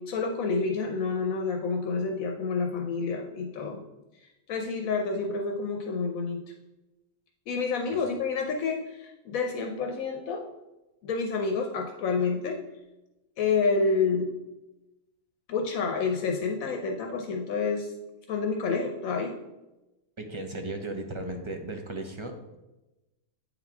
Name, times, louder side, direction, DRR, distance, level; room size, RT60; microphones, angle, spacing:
voice 1, 0.0-3.8 4.5-6.4 7.5-10.5 11.0-12.6 13.4-14.3 15.5-17.9 18.3-19.4, left 4 dB, 80° left, 3 dB, 1.1 m, -28 dB
voice 2, 20.2-22.6, right 2 dB, 35° right, 2 dB, 0.5 m, -36 dB
8.6 x 4.0 x 4.5 m, 1.0 s
omnidirectional pair, 1.4 m